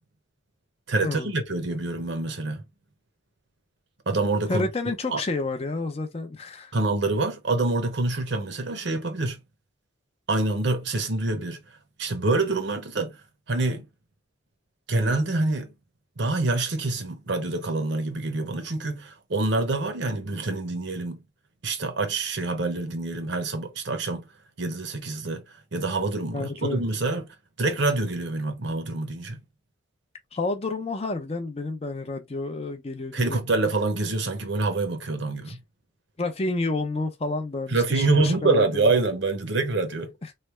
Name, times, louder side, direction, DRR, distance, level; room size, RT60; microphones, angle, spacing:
voice 1, 0.9-2.6 4.1-4.7 5.1-5.2 6.7-9.4 10.3-11.6 12.0-13.2 13.5-13.9 14.9-15.7 16.2-21.2 21.6-24.3 24.6-25.4 25.7-27.3 27.6-29.4 33.1-35.6 37.7-40.1, right 3 dB, 60° right, 0.8 m, -26 dB
voice 2, 4.5-6.7 26.3-26.8 30.3-33.4 35.5-35.6 36.2-39.0 40.2-40.3, left 3 dB, 30° left, 0.5 m, -30 dB
3.2 x 2.1 x 3.1 m
head